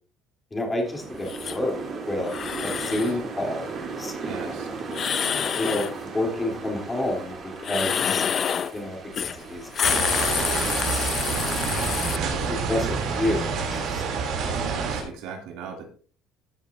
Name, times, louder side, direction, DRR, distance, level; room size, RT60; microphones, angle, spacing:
voice 1, 0.5-1.8 2.1-2.3 2.6-4.7 5.6-8.2 8.7-9.9 10.3-11.4 11.8-12.2 12.5-14.0, left 1 dB, 15° left, 1 dB, 3.0 m, -30 dB
sound 1, 0.8-14.0, right 4 dB, 40° right, 2.9 m, -37 dB
sound 2, 1.3-1.6 2.2-3.2 4.9-6.0 7.6-8.7 9.1-9.4 9.6-12.2, left 8 dB, 40° left, 0.4 m, -27 dB
voice 2, 2.7-3.2 4.2-4.7 8.0-8.3 11.5-12.5 14.5-15.8, right 6 dB, 80° right, 2 dB, 2.6 m, -40 dB
sound 3, 9.8-15.0, right 5 dB, 65° right, 2.8 m, -27 dB
14.0 x 7.1 x 2.6 m, 0.41 s
cardioid pair, 130°, 0 cm